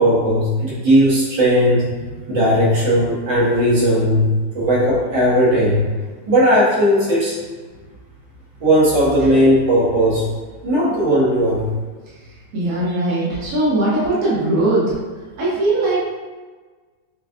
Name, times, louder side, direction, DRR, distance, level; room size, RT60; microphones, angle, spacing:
voice 1, 0.0-1.9 2.3-4.3 4.5-5.8 6.3-7.3 8.6-10.2 10.6-11.7, equal, 75° right, -8 dB, 2.0 m, -16 dB
voice 2, 12.5-15.0 15.4-16.0, right 2 dB, 55° right, -8 dB, 1.4 m, -19 dB
6.4 x 2.3 x 2.5 m, 1.4 s
omnidirectional pair, 2.1 m